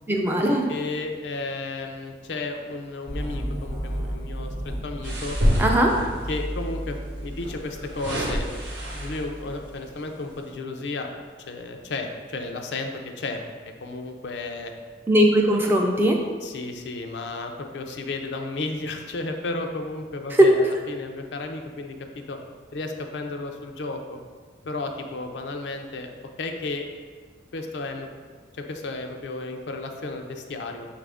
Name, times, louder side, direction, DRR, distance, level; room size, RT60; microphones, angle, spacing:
voice 1, 0.1-0.7 5.6-5.9 15.1-16.2, equal, 10° right, 0 dB, 0.3 m, -20 dB
voice 2, 0.7-4.5 4.8-5.4 6.3-11.1 11.5-12.9 13.2-13.4 13.8-14.7 15.5-15.6 16.4-22.0 22.3-22.4 22.7-24.2 24.6-26.1 26.4-26.9 27.5-28.1 28.5-30.9, left 3 dB, 75° left, 4 dB, 0.4 m, -33 dB
sound 1, 3.1-9.9, equal, 35° right, 0.9 m, -34 dB
sound 2, 5.0-6.4 7.4-9.4 10.0-10.2, equal, 85° right, 0.8 m, -27 dB
5.8 x 2.5 x 3.4 m, 1.5 s
head